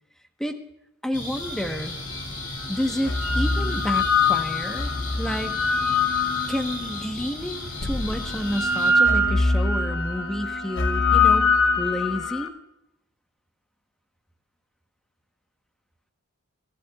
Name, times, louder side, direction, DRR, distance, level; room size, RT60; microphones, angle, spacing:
voice 1, 1.0-1.9 2.7-4.9 5.2-5.6 6.5-11.5 11.8-12.5, equal, ahead, 5 dB, 1.1 m, -30 dB
sound 1, 1.1-8.9, left 1 dB, 40° left, 3.3 m, -35 dB
sound 2, 1.7-1.8 2.8-7.0 7.8-12.5, left 3 dB, 60° left, 1.0 m, -23 dB
22.5 x 14.0 x 2.4 m, 0.86 s
head